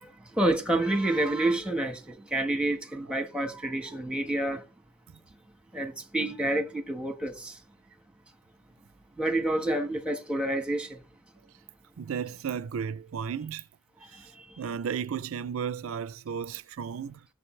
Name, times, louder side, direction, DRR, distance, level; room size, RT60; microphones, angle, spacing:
voice 1, 0.0-4.6 5.7-7.6 9.2-11.0 14.1-14.4, right 1 dB, 5° right, 1.3 m, -29 dB
voice 2, 12.0-13.7 14.0-17.3, right 7 dB, 70° right, 0.4 m, -34 dB
17.0 x 6.9 x 3.2 m
head